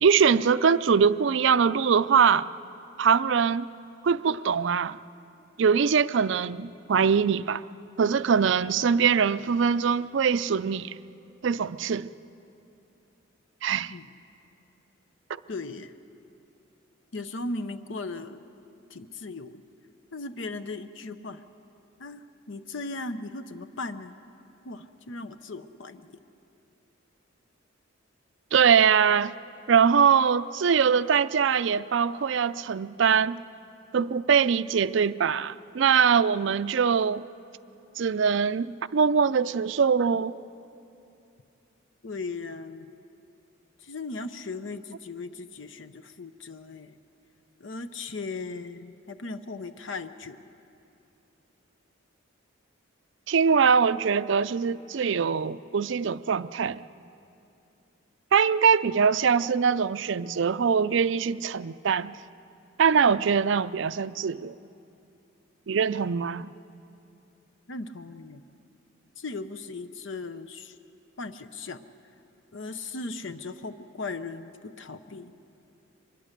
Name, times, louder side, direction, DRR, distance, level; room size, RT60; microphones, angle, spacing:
voice 1, 0.0-2.5 3.0-3.7 4.0-5.0 5.6-7.6 8.0-11.0 11.4-12.1 13.6-13.9 28.5-29.3 29.7-33.4 33.9-37.2 38.0-40.4 53.3-56.8 58.3-62.2 62.8-64.5 65.7-66.5, right 6 dB, 65° right, 0.4 m, -22 dB
voice 2, 15.5-15.9 17.1-18.4 18.9-19.6 20.1-21.4 22.0-24.2 24.6-26.2 42.0-42.9 43.8-47.0 47.6-50.4 66.3-66.5 67.7-68.4 69.2-70.8 71.2-71.8 72.5-75.4, left 3 dB, 65° left, 0.7 m, -37 dB
24.5 x 21.5 x 6.7 m
head